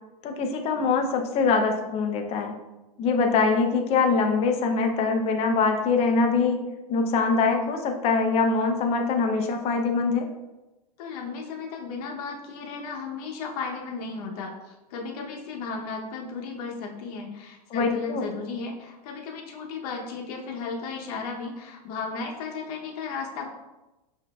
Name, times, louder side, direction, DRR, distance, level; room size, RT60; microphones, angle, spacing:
voice 1, 0.2-2.6 3.0-10.3 17.7-18.2, left 4 dB, 30° left, 4 dB, 0.5 m, -23 dB
voice 2, 11.0-23.5, left 4 dB, 60° left, 1 dB, 0.8 m, -35 dB
5.8 x 2.6 x 2.3 m, 1.0 s
supercardioid pair, 130°, 21 cm